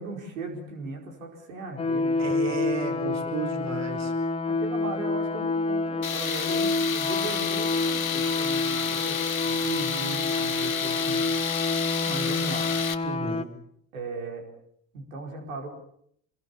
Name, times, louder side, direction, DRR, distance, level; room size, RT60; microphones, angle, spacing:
voice 1, 0.0-3.3 4.5-9.7 10.4-11.2 12.1-12.7 13.9-14.4 14.9-15.7, right 3 dB, 75° right, 2 dB, 4.9 m, -38 dB
sound 1, 1.8-13.4, left 3 dB, 15° left, 2.1 m, -28 dB
voice 2, 2.2-4.1 9.6-10.3 13.0-13.5, right 5 dB, 40° right, 7 dB, 4.6 m, -33 dB
Tools, 6.0-12.9, left 7 dB, 85° left, 1.3 m, -30 dB
27.0 x 22.5 x 7.2 m, 0.68 s
figure-of-eight pair, 60°, 40 cm